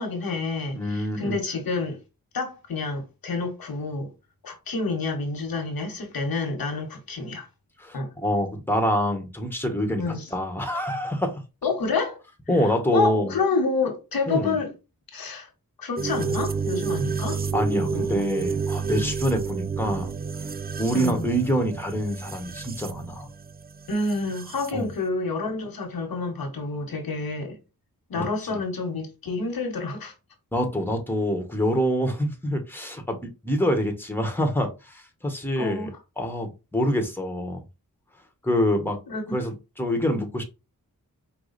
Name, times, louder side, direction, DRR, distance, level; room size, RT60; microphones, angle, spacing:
voice 1, 0.0-2.0 2.3-4.1 4.4-7.5 7.9-8.1 10.0-10.3 11.6-12.2 12.9-14.7 15.1-15.5 15.8-17.4 17.9-18.2 20.9-21.3 23.9-27.6 28.1-30.1 35.6-35.9 39.1-39.4, left 3 dB, 90° left, 1.3 m, -28 dB
voice 2, 0.7-1.3 7.8-11.4 12.5-13.4 14.3-14.6 17.5-20.1 20.8-23.3 24.7-24.9 28.2-28.6 30.5-35.9 36.2-37.6 38.4-39.0 39.3-40.4, equal, 5° left, 1.2 m, -26 dB
sound 1, 16.0-24.7, right 5 dB, 30° right, 0.4 m, -30 dB
4.8 x 2.3 x 4.0 m
cardioid pair, 60°, 35 cm